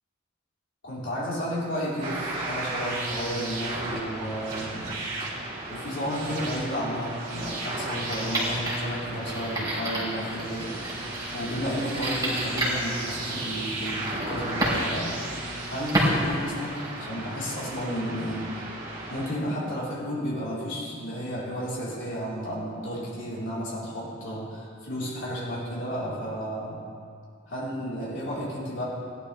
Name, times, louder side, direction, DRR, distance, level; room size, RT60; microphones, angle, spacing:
voice 1, 0.8-4.9 5.2-10.7 11.3-15.2 15.7-18.6 19.1-26.8 27.5-28.8, equal, 60° left, -8 dB, 3.9 m, -32 dB
sound 1, 2.0-19.3, right 2 dB, 35° right, 3.2 m, -35 dB
sound 2, 8.0-17.1, right 1 dB, 20° right, 3.7 m, -31 dB
19.5 x 11.5 x 3.3 m, 2.3 s
head